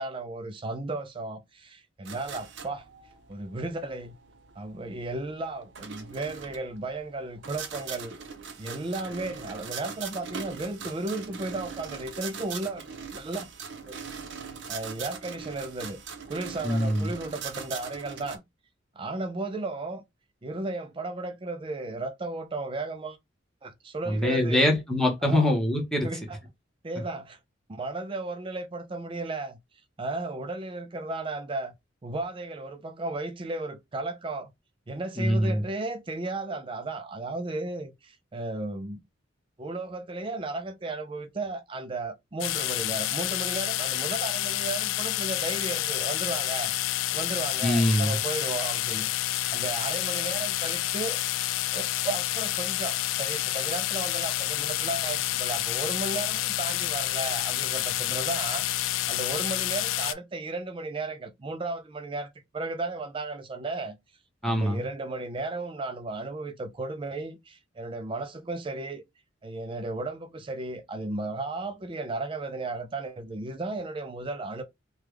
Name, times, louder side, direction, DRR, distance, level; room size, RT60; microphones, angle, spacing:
voice 1, 0.0-2.9 3.3-4.1 4.6-8.2 8.6-12.9 13.1-13.5 13.8-14.0 14.7-16.0 16.3-18.4 19.0-20.0 20.4-23.2 23.6-24.7 25.2-25.5 26.0-26.4 26.8-27.4 27.7-29.6 30.0-31.7 32.0-34.5 34.9-39.0 39.6-46.7 47.1-51.2 51.7-58.7 59.1-64.0 64.4-69.0 69.4-74.6, right 2 dB, 25° right, 0.4 m, -34 dB
sound 1, 2.1-18.4, right 6 dB, 65° right, 0.7 m, -41 dB
voice 2, 16.6-17.1 24.1-26.1 35.2-35.6 47.6-48.2 64.4-64.8, left 1 dB, 5° left, 0.9 m, -24 dB
sound 2, 42.4-60.1, left 14 dB, 85° left, 0.3 m, -29 dB
3.3 x 2.3 x 3.2 m
head